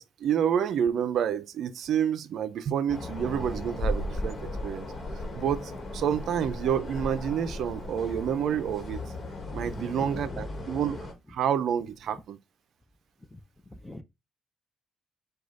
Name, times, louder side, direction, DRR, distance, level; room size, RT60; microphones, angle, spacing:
voice 1, 0.0-4.9 5.3-9.0 9.5-11.0 11.3-12.4, right 8 dB, 70° right, 0.5 m, -28 dB
sound 1, 2.9-11.1, left 1 dB, 40° left, 1.4 m, -36 dB
voice 2, 9.5-10.7 11.3-11.4 12.1-12.2 13.3-13.4 13.7-14.0, left 1 dB, 10° left, 0.7 m, -43 dB
4.8 x 2.3 x 3.8 m
cardioid pair, 90°, 0 cm